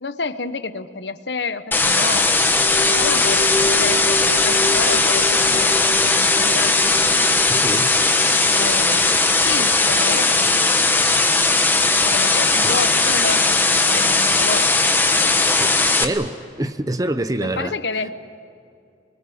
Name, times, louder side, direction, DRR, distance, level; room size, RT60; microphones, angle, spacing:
voice 1, 0.0-2.3 2.8-6.8 8.5-9.1 9.4-10.8 12.0-14.7 17.4-18.1, left 4 dB, 80° left, 1.0 m, -29 dB
sound 1, 1.7-16.0, left 3 dB, 10° left, 1.2 m, -18 dB
sound 2, 2.3-9.7, left 1 dB, 40° left, 2.4 m, -30 dB
voice 2, 7.5-7.9 12.6-12.7 15.4-17.7, right 1 dB, 20° right, 0.8 m, -26 dB
24.5 x 22.5 x 8.6 m
head